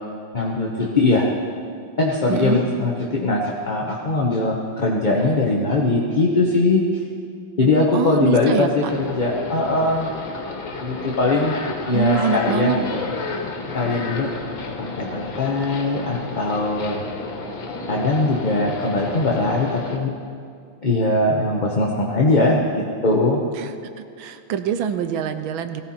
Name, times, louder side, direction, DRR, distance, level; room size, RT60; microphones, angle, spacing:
voice 1, 0.3-1.3 2.0-6.8 7.6-10.1 10.8-11.6 11.9-13.1 13.7-14.3 14.8-17.0 17.9-20.1 20.8-23.4, left 2 dB, 30° left, -3 dB, 0.9 m, -21 dB
voice 2, 2.3-2.6 7.9-8.9 11.9-12.8 23.6-23.7 24.2-25.8, right 7 dB, 85° right, 9 dB, 1.6 m, -24 dB
sound 1, 8.9-20.0, left 4 dB, 75° left, 2.2 m, -32 dB
18.5 x 15.5 x 4.3 m, 2.3 s
omnidirectional pair, 2.2 m